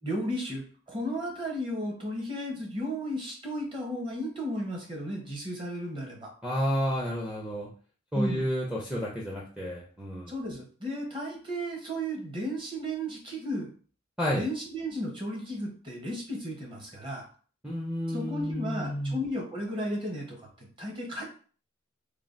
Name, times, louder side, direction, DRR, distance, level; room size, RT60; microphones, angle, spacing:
voice 1, 0.0-6.3 8.1-8.5 10.3-13.7 14.3-17.3 18.1-21.3, equal, 25° right, -1 dB, 0.8 m, -34 dB
voice 2, 6.4-7.7 8.1-10.3 14.2-14.4 17.6-19.2, equal, 5° right, -4 dB, 0.4 m, -31 dB
3.2 x 2.2 x 2.5 m, 0.41 s
head